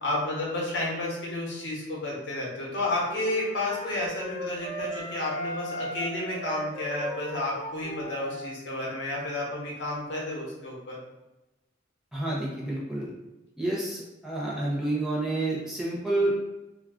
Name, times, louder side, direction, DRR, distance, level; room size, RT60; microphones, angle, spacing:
voice 1, 0.0-11.0, left 2 dB, 70° left, -4 dB, 0.9 m, -31 dB
sound 1, 2.7-8.5, equal, 25° left, 0.8 m, -37 dB
voice 2, 12.1-13.1 13.6-16.3, right 2 dB, 5° right, -6 dB, 0.6 m, -29 dB
2.3 x 2.2 x 3.5 m, 0.99 s
head